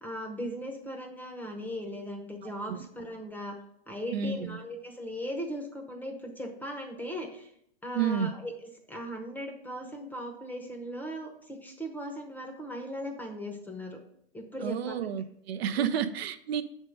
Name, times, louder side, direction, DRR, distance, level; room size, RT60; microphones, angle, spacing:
voice 1, 0.0-3.6 3.9-7.5 7.8-14.0 14.3-15.0 15.7-16.0, equal, 5° left, 3 dB, 0.7 m, -38 dB
voice 2, 2.4-2.8 4.1-4.6 7.9-8.3 14.6-16.6, right 8 dB, 80° right, 11 dB, 0.6 m, -31 dB
6.2 x 3.6 x 5.3 m, 0.72 s
hypercardioid pair, 135°, 31 cm